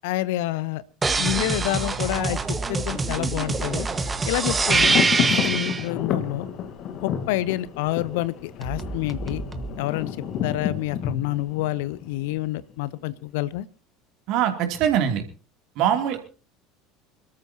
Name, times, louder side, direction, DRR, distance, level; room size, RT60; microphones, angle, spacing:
voice 1, 0.0-0.8 1.2-3.9 4.2-6.5 7.0-9.4 9.8-10.2 10.4-13.7, left 16 dB, 60° left, 19 dB, 0.7 m, -28 dB
sound 1, 1.0-5.9 8.6-9.7, right 4 dB, 20° right, 1.5 m, -24 dB
Thunder, 2.0-12.8 13.1-13.2, left 8 dB, 45° left, 1.5 m, -31 dB
voice 2, 14.3-15.2 15.8-16.2, right 9 dB, 50° right, 5 dB, 2.9 m, -22 dB
26.5 x 13.5 x 2.9 m, 0.37 s
figure-of-eight pair, 70°, 0 cm